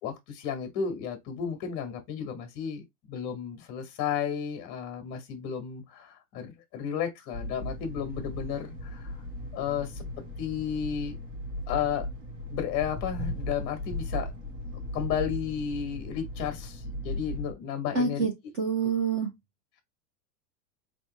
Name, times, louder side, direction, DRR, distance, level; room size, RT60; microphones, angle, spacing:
voice 1, 0.0-9.2 9.5-10.0 10.4-11.2 11.7-12.1 12.5-14.3 14.9-18.2, left 8 dB, 30° left, 1.4 m, -33 dB
sound 1, 7.3-17.5, left 1 dB, 45° right, 1.8 m, -37 dB
voice 2, 17.9-18.3 18.6-19.3, right 5 dB, 20° right, 0.5 m, -26 dB
4.8 x 3.1 x 3.2 m
supercardioid pair, 165°, 49 cm